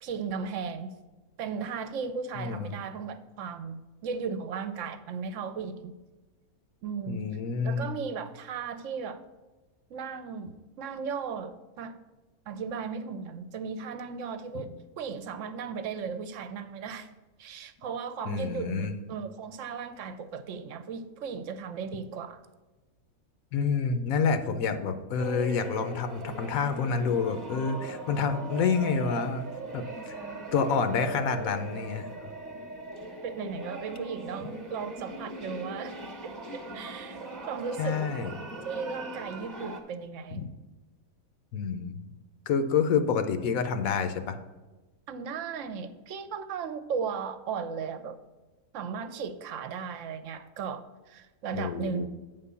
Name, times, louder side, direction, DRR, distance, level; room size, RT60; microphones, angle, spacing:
voice 1, 0.0-0.9 1.4-5.9 6.8-7.3 7.6-9.2 9.9-12.0 12.5-17.1 17.4-22.4 33.2-36.0 36.2-38.0 38.6-40.5 45.1-48.2 48.7-52.1, right 6 dB, 65° right, 12 dB, 0.9 m, -36 dB
voice 2, 2.4-2.7 7.1-8.0 14.5-14.7 18.3-18.9 23.5-29.5 29.7-30.2 30.5-32.1 37.8-38.3 40.3-40.5 41.5-41.9 42.5-44.4 51.5-52.1, left 5 dB, 75° left, 9 dB, 1.1 m, -28 dB
sound 1, 25.2-39.8, right 2 dB, 15° right, 0.9 m, -40 dB
9.0 x 3.7 x 6.8 m, 1.2 s
omnidirectional pair, 1.5 m